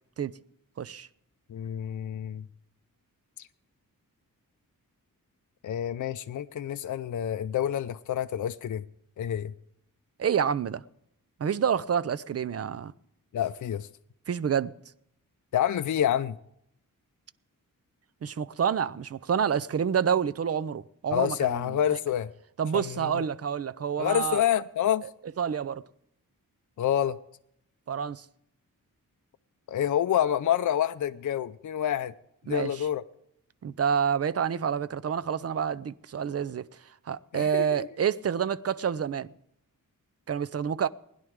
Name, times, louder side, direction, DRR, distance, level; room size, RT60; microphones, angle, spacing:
voice 1, 0.8-1.1 10.2-10.8 11.4-12.9 14.3-14.7 18.2-21.8 22.6-24.4 25.4-25.8 27.9-28.3 32.5-32.9 33.6-36.7 37.1-39.3 40.3-40.9, right 7 dB, 45° right, 0.5 m, -28 dB
voice 2, 1.5-2.5 3.4-3.5 5.6-8.8 9.2-9.5 13.3-13.9 15.5-16.4 21.1-22.3 22.7-23.2 24.0-25.0 26.8-27.2 29.7-32.1 32.5-33.0 37.3-37.9, left 10 dB, 60° left, 0.5 m, -28 dB
20.0 x 10.5 x 3.6 m
wide cardioid pair, 115°, 34 cm